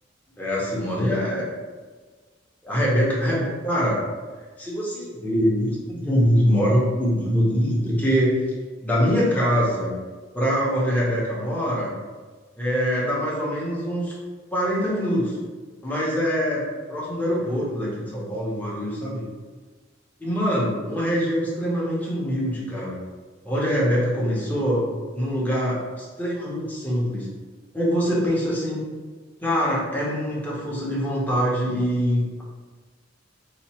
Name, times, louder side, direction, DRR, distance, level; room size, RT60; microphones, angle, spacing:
voice 1, 0.4-1.4 2.6-4.0 4.6-8.4 8.8-9.9 10.3-11.9 12.6-14.1 14.5-15.4 15.8-19.2 20.2-23.0 23.4-24.9 25.1-27.3 27.7-28.8 29.4-32.4, equal, 10° left, -6 dB, 0.9 m, -23 dB
2.9 x 2.5 x 4.3 m, 1.4 s
head